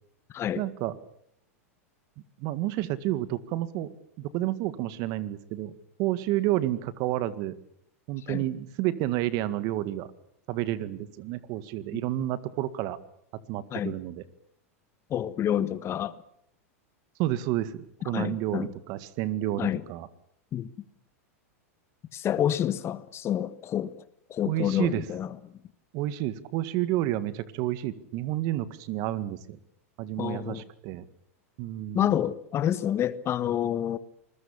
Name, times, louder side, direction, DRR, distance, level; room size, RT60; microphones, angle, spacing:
voice 1, 0.6-1.0 2.4-3.9 4.2-5.7 6.0-7.5 8.1-10.1 10.5-13.0 13.5-14.2 17.2-20.1 24.5-25.0 25.9-29.6 30.0-31.1 31.6-32.1, right 14 dB, 50° right, 1.9 m, -30 dB
voice 2, 15.1-16.2 18.1-18.7 19.6-19.8 20.5-20.7 22.1-23.9 24.3-25.3 30.2-30.6 31.9-34.0, left 10 dB, 35° left, 1.4 m, -28 dB
26.5 x 21.0 x 7.2 m
hypercardioid pair, 105°, 8 cm